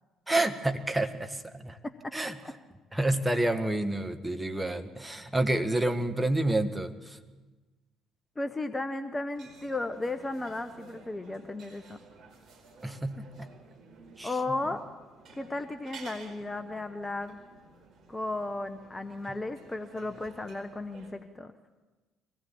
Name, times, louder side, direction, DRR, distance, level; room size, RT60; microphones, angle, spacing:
voice 1, 0.3-1.8 2.1-2.4 2.9-7.2 12.8-13.5 14.2-14.3, right 1 dB, 10° right, 6 dB, 1.7 m, -29 dB
voice 2, 1.8-2.1 8.4-12.0 14.2-14.8 15.4-17.4 18.1-21.5, left 2 dB, 20° left, 9 dB, 1.0 m, -35 dB
sound 1, 9.3-21.1, right 4 dB, 50° right, 4.8 m, -53 dB
23.0 x 17.5 x 7.5 m, 1.2 s
figure-of-eight pair, 50°, 0 cm